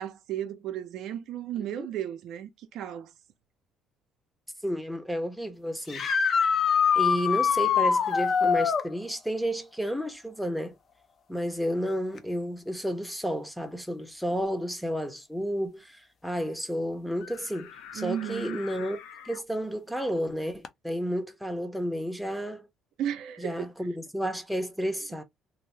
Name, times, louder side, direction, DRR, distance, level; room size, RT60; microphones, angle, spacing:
voice 1, 0.0-3.1 17.9-18.6 23.0-23.7, right 10 dB, 65° right, 0.5 m, -34 dB
voice 2, 4.6-6.1 7.0-10.7 11.3-19.0 19.2-22.7 23.4-25.2, equal, ahead, 0.6 m, -31 dB
sound 1, 5.9-8.9 12.2-12.3 14.3-14.4 20.6-20.7, left 6 dB, 40° left, 0.5 m, -23 dB
sound 2, 17.2-19.4, left 8 dB, 90° left, 0.5 m, -45 dB
2.6 x 2.1 x 3.2 m
cardioid pair, 125°, 0 cm